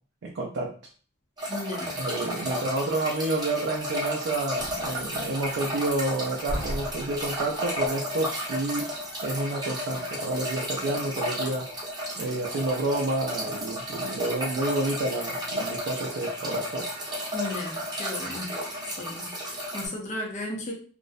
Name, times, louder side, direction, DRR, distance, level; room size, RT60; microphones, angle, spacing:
voice 1, 0.2-0.7 2.0-8.9 9.2-11.7 12.2-16.9, right 2 dB, 55° right, -1 dB, 0.4 m, -29 dB
sound 1, 1.4-19.9, equal, 20° right, 0.7 m, -33 dB
voice 2, 1.5-2.0 17.3-18.5 19.0-20.7, left 2 dB, 35° left, -1 dB, 0.5 m, -35 dB
sound 2, 4.4-15.8, equal, 60° left, 1.1 m, -42 dB
2.4 x 2.0 x 2.5 m, 0.41 s
head